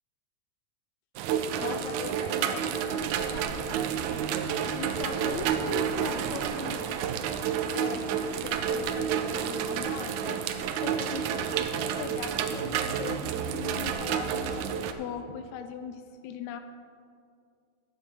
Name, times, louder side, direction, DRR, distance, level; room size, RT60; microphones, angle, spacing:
sound 1, 1.2-14.9, right 8 dB, 85° right, 2.0 m, -30 dB
voice 1, 1.6-4.3 4.7-7.0 7.7-11.4 12.0-16.6, left 8 dB, 80° left, 7 dB, 1.8 m, -40 dB
12.0 x 10.0 x 4.8 m, 2.4 s
omnidirectional pair, 3.4 m